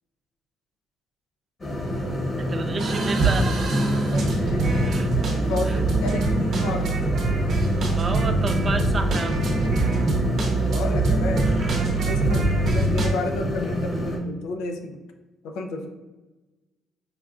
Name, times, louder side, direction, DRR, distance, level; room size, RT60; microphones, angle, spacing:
sound 1, 1.6-14.2, equal, 35° left, 1.0 m, -28 dB
voice 1, 2.4-3.5 4.0-4.2 4.8-5.1 5.6-5.8 7.8-9.4, right 4 dB, 35° right, 7 dB, 0.4 m, -31 dB
sound 2, 2.8-13.1, right 2 dB, 60° right, 0.7 m, -23 dB
voice 2, 4.1-5.0 5.3-6.9 10.5-11.6 12.0-15.0 15.4-15.9, left 2 dB, 85° left, 4 dB, 0.4 m, -31 dB
5.1 x 2.3 x 2.4 m, 1.2 s
cardioid pair, 100°, 0 cm